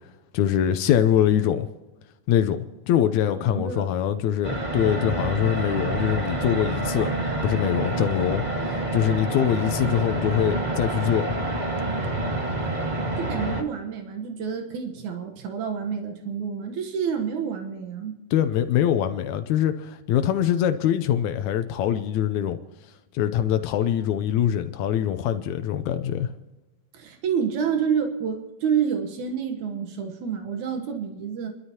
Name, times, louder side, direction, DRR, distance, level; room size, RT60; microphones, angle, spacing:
voice 1, 0.3-1.7 2.3-2.6 2.9-7.1 7.4-11.3 18.3-22.6 23.1-26.3, left 10 dB, 85° left, 2.1 m, -23 dB
voice 2, 3.5-3.9 13.2-18.2 26.9-31.5, right 7 dB, 80° right, 2.6 m, -28 dB
sound 1, 4.4-13.6, right 2 dB, 20° right, 1.2 m, -27 dB
29.5 x 12.5 x 2.9 m
omnidirectional pair, 3.3 m